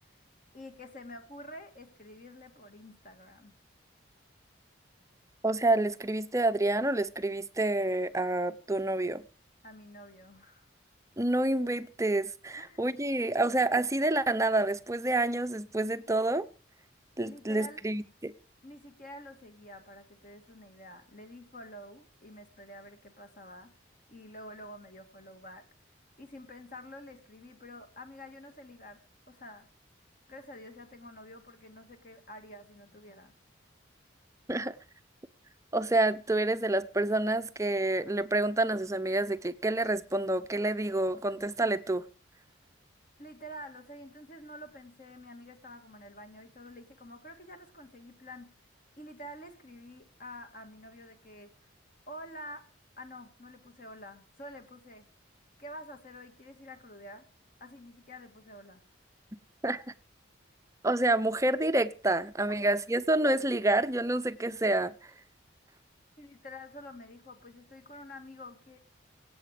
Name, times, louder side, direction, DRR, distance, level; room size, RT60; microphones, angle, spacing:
voice 1, 0.5-3.5 9.6-10.7 12.6-12.8 17.2-17.8 18.6-23.7 24.1-25.6 26.2-29.0 29.3-29.7 30.3-33.3 43.2-48.5 49.0-51.5 52.1-52.7 53.0-55.1 55.6-57.2 57.6-58.8 66.2-68.9, left 1 dB, 40° left, 2.0 m, -48 dB
voice 2, 5.4-9.2 11.2-16.5 17.2-18.3 34.5-34.8 35.7-42.1 59.6-59.8 60.8-65.1, right 2 dB, 15° right, 0.7 m, -28 dB
24.5 x 8.6 x 5.0 m
head